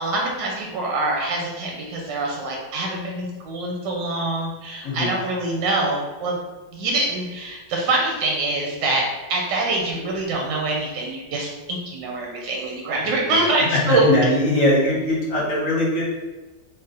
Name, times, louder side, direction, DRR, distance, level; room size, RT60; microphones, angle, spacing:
voice 1, 0.0-6.4 6.7-9.0 9.3-14.1, right 2 dB, 90° right, -1 dB, 1.3 m, -24 dB
voice 2, 4.8-5.2 13.2-13.4 13.9-16.0, left 1 dB, 55° left, -4 dB, 1.0 m, -21 dB
3.7 x 2.1 x 4.0 m, 1.2 s
omnidirectional pair, 1.9 m